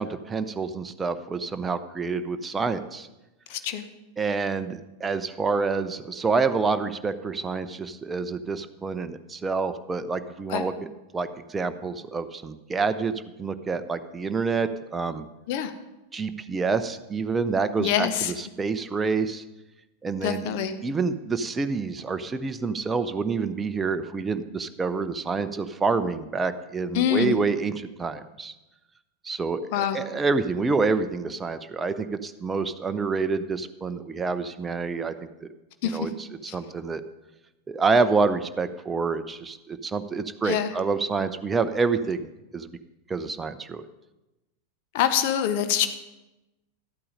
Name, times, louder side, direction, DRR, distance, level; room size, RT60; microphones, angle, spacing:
voice 1, 0.0-3.1 4.2-10.9 11.1-13.1 13.4-15.2 16.1-19.4 20.0-28.5 29.2-35.5 35.8-37.0 37.7-42.3 42.5-42.8 43.1-43.9, right 4 dB, 15° right, 10 dB, 0.6 m, -27 dB
voice 2, 3.5-3.8 10.5-10.6 15.5-15.7 17.8-18.3 20.2-20.7 26.9-27.3 29.7-30.0 35.8-36.0 36.5-36.6 40.4-40.7 44.9-45.9, left 9 dB, 50° left, 9 dB, 1.0 m, -25 dB
12.5 x 8.6 x 5.1 m, 1.0 s
figure-of-eight pair, 90°, 0 cm